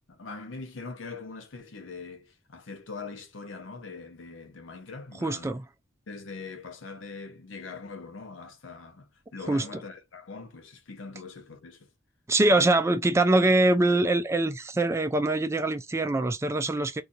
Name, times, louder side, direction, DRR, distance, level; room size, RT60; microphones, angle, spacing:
voice 1, 0.0-5.5 6.1-11.9 12.4-12.7, left 4 dB, 80° left, 0.7 m, -42 dB
voice 2, 5.2-5.6 9.5-9.8 12.3-17.0, right 2 dB, 15° right, 0.3 m, -23 dB
2.6 x 2.3 x 3.9 m
head